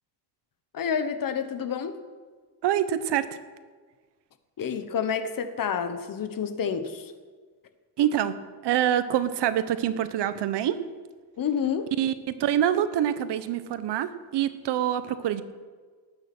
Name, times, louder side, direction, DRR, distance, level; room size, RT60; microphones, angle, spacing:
voice 1, 0.7-2.0 4.6-7.1 11.4-11.9, left 7 dB, 55° left, 10 dB, 1.3 m, -29 dB
voice 2, 2.6-3.3 8.0-8.3 8.6-10.8 12.0-15.4, right 10 dB, 85° right, 13 dB, 1.1 m, -25 dB
19.0 x 8.9 x 6.2 m, 1.5 s
cardioid pair, 125°, 40 cm